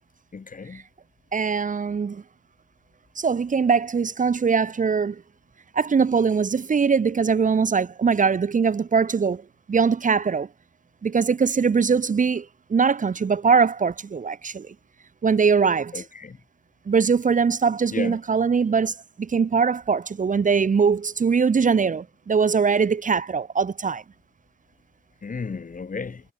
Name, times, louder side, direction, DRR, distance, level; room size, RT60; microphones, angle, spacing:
voice 1, 0.3-0.8 15.9-16.4 17.9-18.2 25.2-26.2, left 5 dB, 50° left, 2.9 m, -33 dB
voice 2, 1.3-2.2 3.2-5.2 5.7-9.4 9.7-10.5 11.0-14.7 15.2-16.0 16.9-24.0, right 5 dB, 45° right, 0.9 m, -22 dB
cardioid pair, 60°, 18 cm